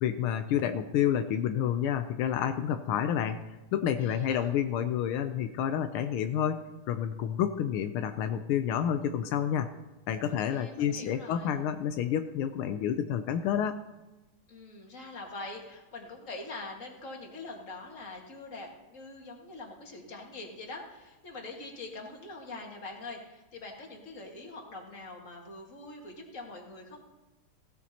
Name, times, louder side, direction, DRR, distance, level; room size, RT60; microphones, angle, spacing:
voice 1, 0.0-9.7 10.1-13.8, left 9 dB, 85° left, 8 dB, 1.5 m, -29 dB
voice 2, 4.0-4.5 10.3-11.5 14.5-27.0, left 2 dB, 40° left, 1 dB, 2.1 m, -44 dB
16.5 x 13.0 x 2.9 m, 1.1 s
omnidirectional pair, 2.3 m